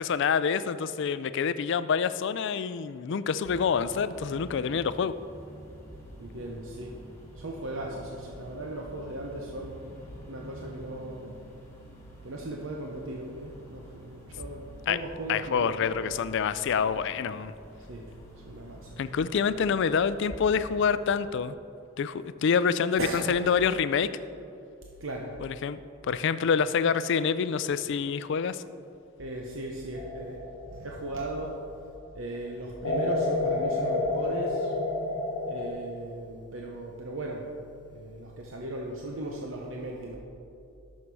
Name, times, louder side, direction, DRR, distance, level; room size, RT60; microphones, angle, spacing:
voice 1, 0.0-5.1 14.9-15.0 15.3-17.5 19.0-21.6 22.0-24.1 25.4-25.8 26.1-28.6, left 6 dB, 65° left, 14 dB, 0.4 m, -27 dB
sound 1, 3.4-21.2, equal, 15° left, 2.3 m, -48 dB
voice 2, 6.2-6.9 7.4-9.8 10.3-11.4 12.2-15.7 16.0-16.2 17.8-18.0 18.4-19.3 23.0-23.3 25.0-25.3 29.2-30.4 30.7-31.6 32.1-34.7 35.5-37.5 37.9-40.2, right 1 dB, 70° right, 0 dB, 0.8 m, -37 dB
sound 2, 29.9-31.8 32.8-35.7, left 2 dB, 85° left, 1.0 m, -30 dB
11.5 x 6.4 x 4.7 m, 2.6 s
head